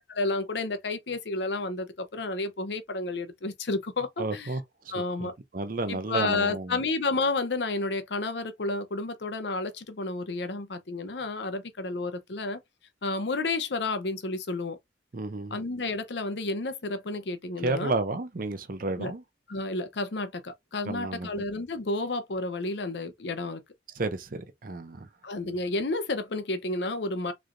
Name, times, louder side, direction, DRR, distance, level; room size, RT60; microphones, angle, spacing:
voice 1, 0.1-4.5 4.9-5.3 5.9-12.6 13.0-14.8 15.5-17.9 19.0-19.1 19.5-23.6 25.2-27.3, left 3 dB, 70° left, 0.7 m, -31 dB
voice 2, 4.2-4.9 5.2-6.8 15.1-15.6 17.6-19.2 20.9-21.3 24.0-25.1, right 3 dB, 50° right, 0.6 m, -32 dB
3.8 x 3.2 x 2.6 m
head